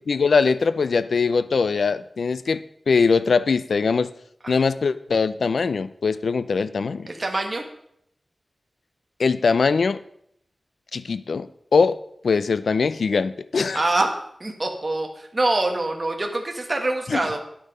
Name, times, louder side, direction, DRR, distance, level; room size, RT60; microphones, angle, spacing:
voice 1, 0.1-4.1 4.5-7.1 9.2-10.0 10.9-12.0 12.2-13.8 17.1-17.2, left 5 dB, 90° left, 15 dB, 0.5 m, -21 dB
voice 2, 7.1-7.6 13.7-14.1 14.4-17.4, right 2 dB, 35° right, 2 dB, 1.6 m, -24 dB
10.0 x 8.6 x 5.4 m, 0.72 s
wide cardioid pair, 90°, 0 cm